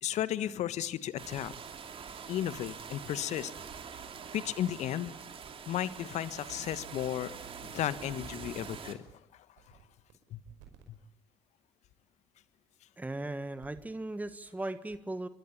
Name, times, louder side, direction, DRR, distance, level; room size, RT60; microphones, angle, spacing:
voice 1, 0.0-1.5 2.3-3.5 4.3-5.1 5.7-7.3 7.6-9.1 10.3-10.4, left 11 dB, 55° left, 15 dB, 1.4 m, -34 dB
sound 1, 1.2-8.9, right 6 dB, 40° right, 3.0 m, -45 dB
sound 2, 3.6-4.3 5.0-5.1 5.4-5.5 6.4-8.1 9.1-9.2 9.6-10.1 10.4-10.8 12.4-12.5 13.4-13.9 14.2-14.4, right 11 dB, 70° right, 5.1 m, -55 dB
voice 2, 13.0-15.3, right 2 dB, 10° right, 12 dB, 1.5 m, -37 dB
27.5 x 23.5 x 8.8 m, 0.79 s
hypercardioid pair, 55°, 14 cm